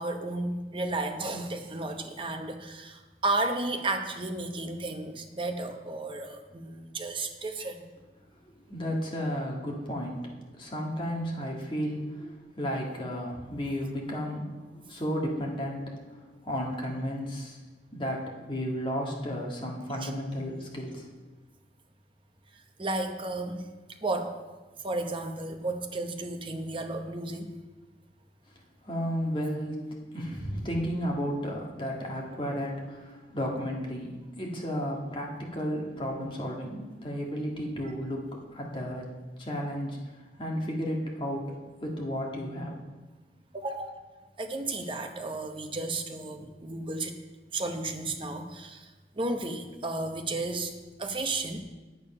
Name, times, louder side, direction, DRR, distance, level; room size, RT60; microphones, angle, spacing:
voice 1, 0.0-7.8 20.0-20.1 22.8-23.6 24.0-24.3 24.8-27.5 43.5-43.9 44.4-47.2 47.5-48.9 49.2-50.7 51.0-51.6, right 2 dB, 30° right, 5 dB, 0.9 m, -33 dB
voice 2, 8.5-17.6 17.9-21.1 28.8-29.8 30.1-39.1 39.4-40.1 40.4-41.5 41.8-42.8, equal, 30° left, -1 dB, 1.7 m, -33 dB
9.1 x 8.4 x 5.5 m, 1.2 s
head